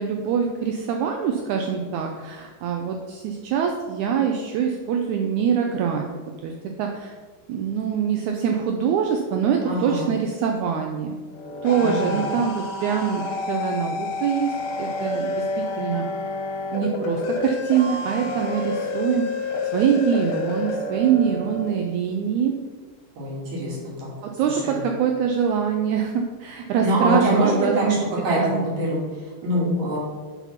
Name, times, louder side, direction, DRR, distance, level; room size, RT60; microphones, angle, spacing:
voice 1, 0.0-6.0 6.4-7.1 7.5-11.2 11.6-16.0 16.7-19.3 19.7-22.5 24.2-28.0 28.4-28.7, right 7 dB, 80° right, 2 dB, 1.8 m, -24 dB
voice 2, 9.6-10.1 11.8-12.3 23.2-24.1 24.4-24.8 26.8-27.8 28.2-30.0, right 1 dB, 55° right, -5 dB, 3.2 m, -24 dB
sound 1, 11.3-21.7, left 2 dB, 85° left, 2.6 m, -29 dB
6.0 x 5.7 x 5.7 m, 1.4 s
omnidirectional pair, 3.9 m